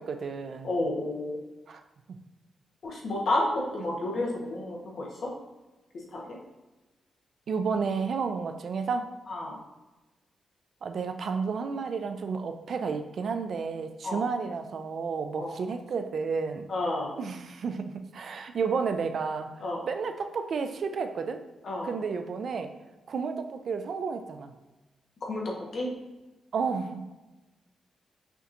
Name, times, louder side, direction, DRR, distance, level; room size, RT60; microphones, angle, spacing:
voice 1, 0.0-0.7 1.7-1.8 7.5-9.1 10.8-16.7 17.2-19.5 19.9-21.4 21.8-22.7 23.1-24.5 26.5-27.1, right 5 dB, 50° right, 7 dB, 0.4 m, -31 dB
voice 2, 0.6-1.4 2.8-5.3 5.9-6.4 9.3-9.6 14.0-14.2 15.4-15.5 16.7-17.1 19.6-19.8 21.6-21.9 25.2-25.9, left 2 dB, 50° left, -2 dB, 1.0 m, -31 dB
5.7 x 2.9 x 2.5 m, 1.1 s
wide cardioid pair, 175°, 0 cm